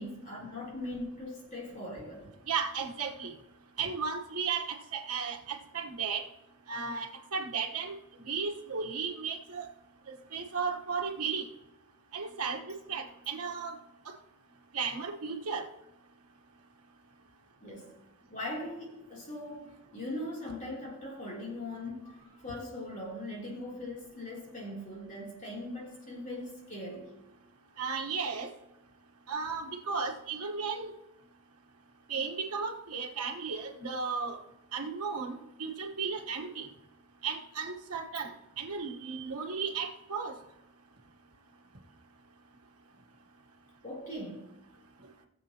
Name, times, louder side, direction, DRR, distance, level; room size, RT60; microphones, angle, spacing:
voice 1, 0.0-2.3 17.6-17.9 18.3-27.1 43.8-44.5, left 1 dB, 35° left, -3 dB, 3.2 m, -40 dB
voice 2, 2.5-3.3 3.8-6.2 6.7-9.7 10.1-11.4 12.1-12.6 12.9-13.7 14.1-14.2 14.7-15.6 27.8-28.5 29.3-30.9 32.1-34.4 34.7-36.7 37.2-38.3 38.6-40.3, right 5 dB, 80° right, 2 dB, 1.2 m, -35 dB
20.5 x 7.4 x 2.9 m, 0.94 s
head